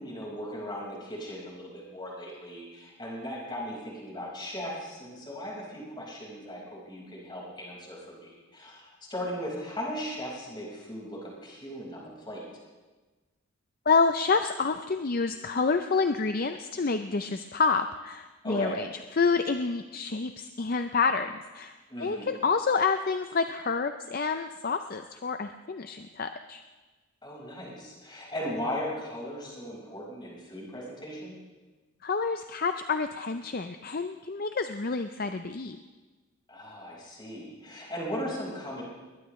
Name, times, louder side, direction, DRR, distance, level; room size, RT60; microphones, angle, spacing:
voice 1, 0.0-12.4 18.4-18.8 21.9-22.3 27.2-31.4 36.5-38.8, equal, 20° left, -4 dB, 4.9 m, -37 dB
voice 2, 13.9-18.9 19.1-26.6 32.0-35.8, left 4 dB, 45° left, 8 dB, 0.5 m, -28 dB
21.5 x 20.0 x 3.2 m, 1.3 s
head